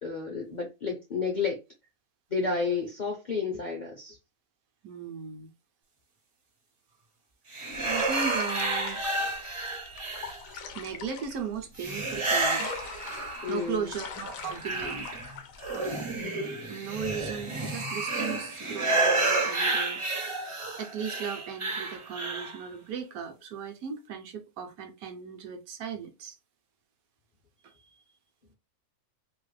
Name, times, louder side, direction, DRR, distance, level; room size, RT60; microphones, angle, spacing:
voice 1, 0.0-1.6 2.3-4.2 13.4-13.9, left 5 dB, 55° left, 0.5 m, -31 dB
voice 2, 4.8-5.5 7.8-9.3 10.5-12.7 13.5-15.1 15.7-16.1 16.7-20.4 20.8-26.4, right 6 dB, 75° right, 1.1 m, -37 dB
sound 1, 7.5-10.7 11.8-13.8 14.1-22.6, right 2 dB, 40° right, 0.4 m, -30 dB
sound 2, 7.7-16.2, left 7 dB, 70° left, 0.9 m, -43 dB
2.9 x 2.3 x 3.1 m
omnidirectional pair, 1.6 m